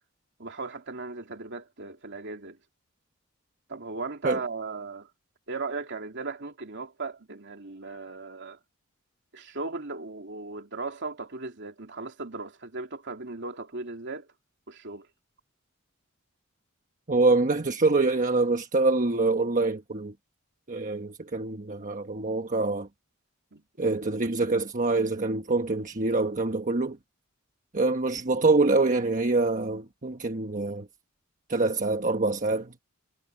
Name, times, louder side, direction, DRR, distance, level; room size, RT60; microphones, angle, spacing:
voice 1, 0.4-2.6 3.7-5.1 5.5-8.6 9.3-14.3 14.7-15.1 23.5-23.6, right 3 dB, 55° right, 2.9 m, -37 dB
voice 2, 17.1-20.1 20.7-22.9 23.8-27.0 27.7-30.9 31.5-32.7, right 3 dB, 40° right, 1.2 m, -25 dB
head